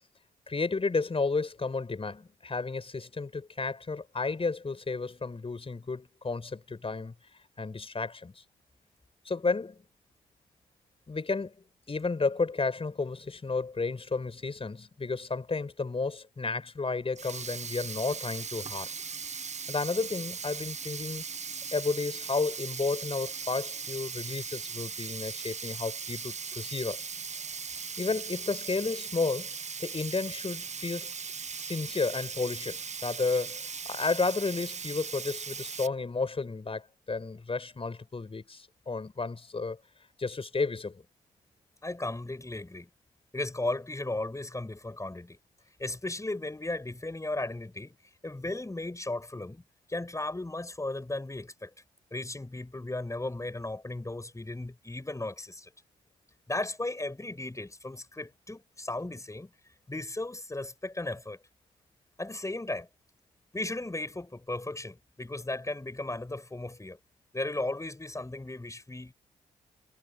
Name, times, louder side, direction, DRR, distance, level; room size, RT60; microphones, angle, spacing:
voice 1, 0.5-7.1 7.6-8.4 9.3-9.8 11.1-11.5 11.9-18.9 19.7-21.2 21.7-27.1 28.0-29.5 29.8-31.1 31.5-39.8 40.2-41.0, left 4 dB, 35° left, 5.5 m, -32 dB
Sink (filling or washing), 17.0-35.9, right 5 dB, 45° right, 1.7 m, -39 dB
voice 2, 41.8-42.9 43.3-45.4 45.8-48.0 48.2-49.6 49.9-51.7 52.1-55.7 56.5-59.5 59.9-61.4 62.2-62.9 63.5-67.0 67.3-69.1, left 2 dB, 20° left, 7.5 m, -35 dB
hypercardioid pair, 45°, 16 cm